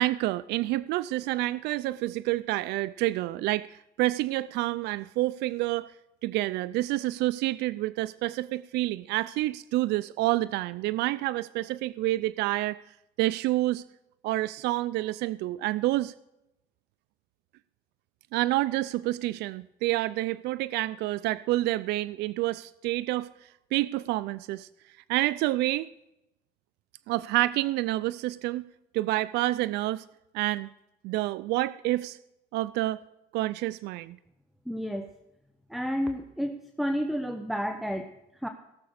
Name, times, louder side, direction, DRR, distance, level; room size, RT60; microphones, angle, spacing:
voice 1, 0.0-5.9 6.2-12.8 13.2-13.8 14.2-16.1 18.3-23.3 23.7-24.7 25.1-25.9 27.1-28.7 28.9-30.0 30.3-30.7 31.0-32.2 32.5-33.0 33.3-34.2, right 17 dB, 85° right, 16 dB, 0.4 m, -28 dB
voice 2, 34.7-35.1 35.7-38.5, equal, ahead, 7 dB, 1.0 m, -31 dB
17.5 x 6.8 x 6.5 m, 0.88 s
cardioid pair, 110°, 17 cm